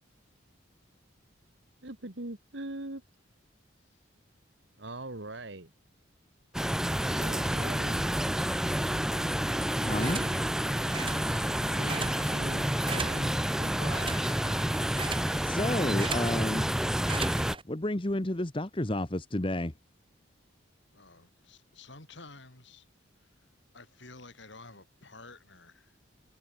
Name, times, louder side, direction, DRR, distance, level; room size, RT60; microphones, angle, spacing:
voice 1, 1.8-3.0 4.8-5.7 7.0-8.1 10.0-10.4 11.7-14.1, right 2 dB, 60° right, 2.1 m, -42 dB
sound 1, 6.5-17.6, equal, 5° right, 0.5 m, -29 dB
sound 2, 9.5-17.6, right 4 dB, 25° right, 4.8 m, -41 dB
voice 2, 9.8-10.2 15.4-16.7 17.7-19.7, left 1 dB, 25° left, 1.1 m, -30 dB
voice 3, 20.9-22.9 23.2-23.3 23.7-26.0, left 2 dB, 65° left, 5.2 m, -52 dB
head